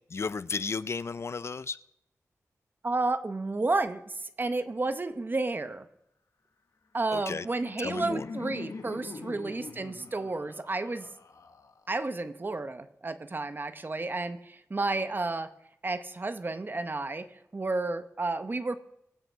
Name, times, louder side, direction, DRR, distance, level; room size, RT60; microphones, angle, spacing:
voice 1, 0.1-1.8 7.1-7.5 7.8-8.3, left 4 dB, 50° left, 16 dB, 0.4 m, -33 dB
voice 2, 2.8-5.9 6.9-11.1 11.9-15.5 15.8-17.3 17.5-18.8, right 3 dB, 35° right, 11 dB, 0.9 m, -31 dB
Laughter, 7.2-12.1, left 4 dB, 70° left, 1.1 m, -43 dB
22.5 x 7.9 x 4.6 m, 0.79 s
wide cardioid pair, 120°, 6 cm